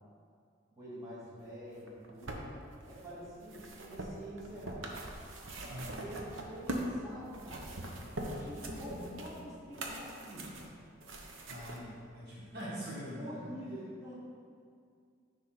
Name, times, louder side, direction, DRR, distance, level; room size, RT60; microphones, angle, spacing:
voice 1, 0.7-2.6 2.8-5.0 6.0-7.8 8.2-10.5 13.2-14.1, equal, 15° right, -9 dB, 2.1 m, -46 dB
sound 1, 1.8-7.0 7.3-11.8 12.6-12.7, right 1 dB, 85° right, 1.0 m, -42 dB
voice 2, 5.7-6.0 11.5-13.3, equal, 55° right, -7 dB, 1.6 m, -43 dB
10.0 x 3.6 x 5.8 m, 2.3 s
head